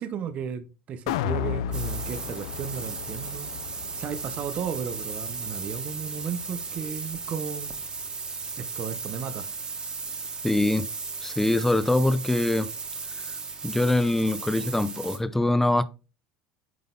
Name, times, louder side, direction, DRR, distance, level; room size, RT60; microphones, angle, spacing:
voice 1, 0.0-3.5 4.0-7.7 8.6-9.5, right 7 dB, 45° right, 0.7 m, -34 dB
sound 1, 1.1-7.3 7.7-7.8, left 10 dB, 85° left, 0.5 m, -35 dB
sound 2, 1.7-15.2, right 4 dB, 30° right, 1.8 m, -36 dB
voice 2, 10.4-10.9 11.2-12.7 13.6-15.8, left 1 dB, 10° left, 0.7 m, -23 dB
9.4 x 3.9 x 3.7 m
supercardioid pair, 105°, 3 cm